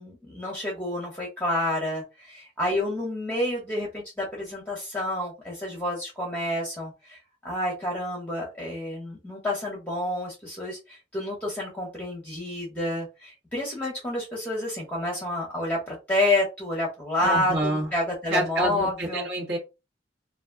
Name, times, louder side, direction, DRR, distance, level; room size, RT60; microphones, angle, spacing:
voice 1, 0.0-19.3, left 1 dB, 10° left, 0.8 m, -29 dB
voice 2, 17.2-17.9 18.3-19.6, right 1 dB, 70° right, 1.3 m, -27 dB
2.5 x 2.1 x 3.4 m
head